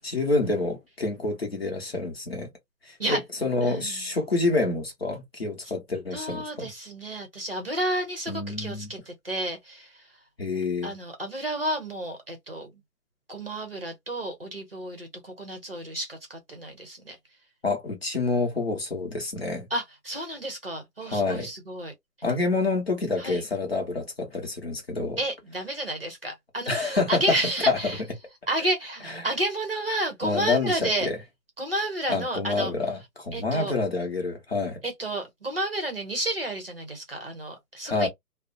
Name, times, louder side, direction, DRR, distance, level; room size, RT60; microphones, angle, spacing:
voice 1, 0.0-2.5 2.8-6.7 8.3-8.9 10.4-10.9 17.6-19.7 21.0-21.5 22.2-25.2 26.7-27.4 27.7-28.0 29.0-29.3 30.2-31.2 32.1-34.8 37.8-38.1, left 3 dB, 40° left, 0.8 m, -27 dB
voice 2, 3.6-4.0 6.1-9.9 10.8-12.7 13.3-17.2 19.7-21.9 23.2-23.4 25.2-28.0 28.5-31.1 31.6-32.7 33.3-33.7 34.8-38.1, right 1 dB, 40° right, 0.7 m, -31 dB
2.5 x 2.0 x 2.5 m
hypercardioid pair, 170°, 47 cm